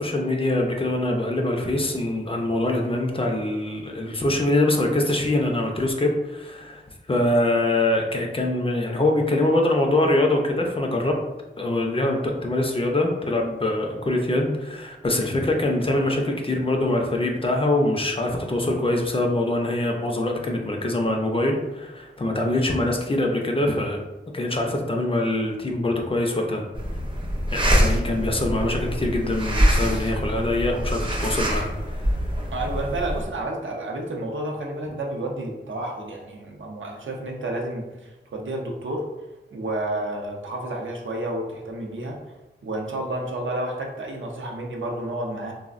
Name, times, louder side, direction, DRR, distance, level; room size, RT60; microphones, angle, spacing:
voice 1, 0.0-6.8 7.1-11.2 11.6-24.0 24.3-26.6 27.5-32.1, left 1 dB, 30° left, 1 dB, 0.4 m, -24 dB
sound 1, 26.7-33.2, equal, 25° right, 0.5 m, -24 dB
voice 2, 32.5-39.0 39.5-42.2 42.6-45.5, right 1 dB, 80° right, 0 dB, 0.5 m, -30 dB
3.2 x 2.0 x 2.4 m, 1.1 s
wide cardioid pair, 80°, 20 cm